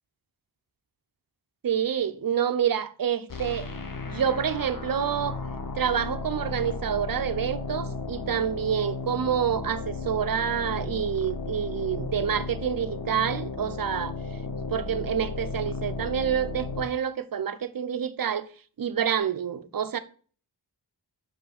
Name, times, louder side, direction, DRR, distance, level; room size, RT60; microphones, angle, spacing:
voice 1, 1.6-3.7 4.1-5.4 5.7-14.1 14.7-18.5 18.8-20.0, right 8 dB, 55° right, 0.8 m, -27 dB
sound 1, 3.3-16.9, left 3 dB, 50° left, 1.2 m, -34 dB
5.8 x 5.5 x 4.2 m
cardioid pair, 40°, 42 cm